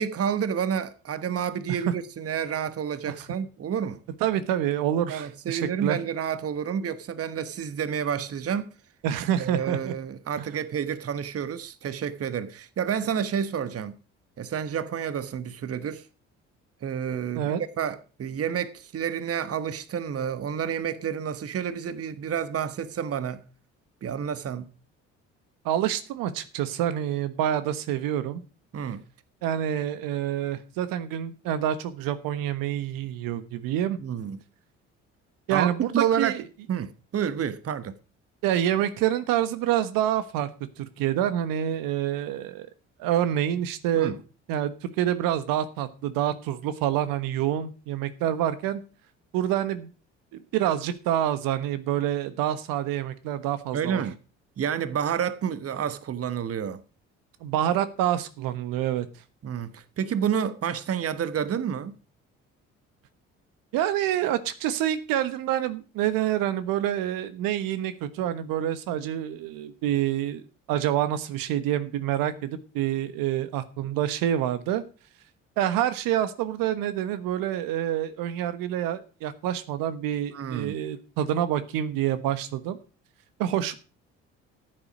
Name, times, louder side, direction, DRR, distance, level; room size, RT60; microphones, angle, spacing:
voice 1, 0.0-4.0 5.1-8.7 9.4-14.0 14.4-16.1 16.8-23.4 24.0-24.7 28.7-29.0 34.0-34.4 35.5-36.4 36.7-38.0 43.9-44.2 53.7-54.2 54.6-56.8 59.4-62.0 80.3-80.8, right 8 dB, 40° right, 1.2 m, -29 dB
voice 2, 4.2-6.0 9.0-9.9 10.4-10.5 17.3-17.6 25.6-28.4 29.4-34.0 35.5-36.4 38.4-42.7 43.0-44.2 44.5-48.8 49.3-49.9 50.3-54.0 57.4-59.1 63.7-70.4 70.7-74.8 75.6-82.8 83.4-83.7, right 11 dB, 65° right, 1.3 m, -27 dB
14.0 x 7.8 x 5.2 m
hypercardioid pair, 55°, 37 cm